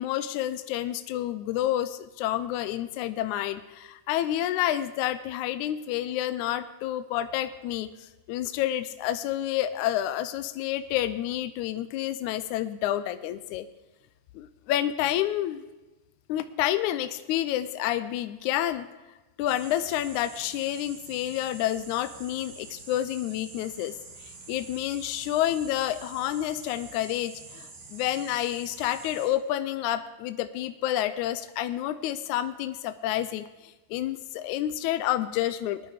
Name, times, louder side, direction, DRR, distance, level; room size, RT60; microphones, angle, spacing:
voice 1, 0.0-13.7 14.3-15.6 16.3-18.9 19.4-35.8, left 12 dB, 80° left, 11 dB, 1.8 m, -29 dB
sound 1, 19.5-29.3, right 4 dB, 85° right, 4.1 m, -47 dB
20.0 x 11.5 x 5.0 m, 1.1 s
omnidirectional pair, 3.9 m